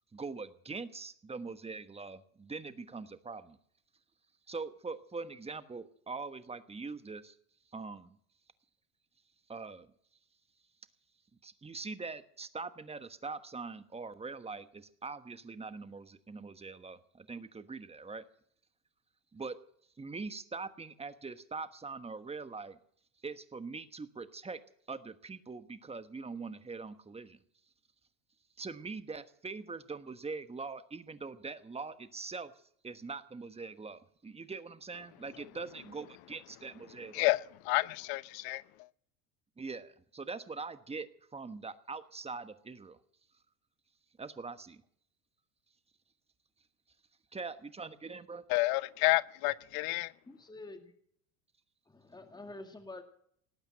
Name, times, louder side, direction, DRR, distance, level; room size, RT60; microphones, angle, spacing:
voice 1, 0.1-3.6 4.5-7.4 7.7-8.2 9.5-9.9 11.4-18.3 19.3-19.6 20.0-22.8 23.2-24.6 24.9-27.4 28.6-32.5 32.8-37.3 39.6-43.0 44.2-44.8 47.3-48.4, right 4 dB, 15° right, 1.2 m, -43 dB
voice 2, 37.1-38.6 48.5-50.1, left 21 dB, 60° left, 0.8 m, -30 dB
voice 3, 50.3-50.9 51.9-53.0, left 2 dB, 10° left, 2.0 m, -47 dB
19.0 x 8.8 x 7.6 m
supercardioid pair, 100°, 40 cm